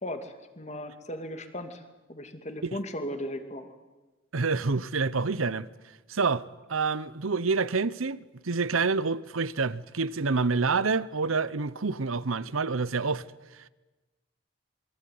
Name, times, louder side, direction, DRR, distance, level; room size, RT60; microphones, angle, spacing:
voice 1, 0.0-3.7, left 1 dB, 35° left, 2.5 m, -37 dB
voice 2, 4.3-5.7 6.1-6.4 6.7-8.2 8.4-13.2, right 4 dB, 85° right, 0.9 m, -27 dB
27.0 x 23.0 x 9.5 m
head